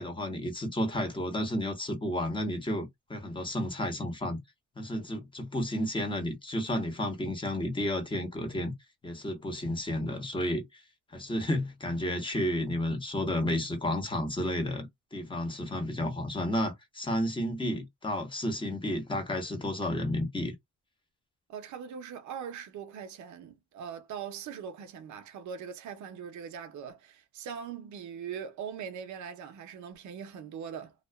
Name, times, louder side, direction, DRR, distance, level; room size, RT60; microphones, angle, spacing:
voice 1, 0.0-4.4 4.8-8.7 9.0-10.8 11.1-20.5, left 1 dB, 15° left, 1.0 m, -32 dB
voice 2, 21.5-30.9, right 7 dB, 70° right, 0.7 m, -41 dB
2.4 x 2.2 x 2.2 m
cardioid pair, 90°, 30 cm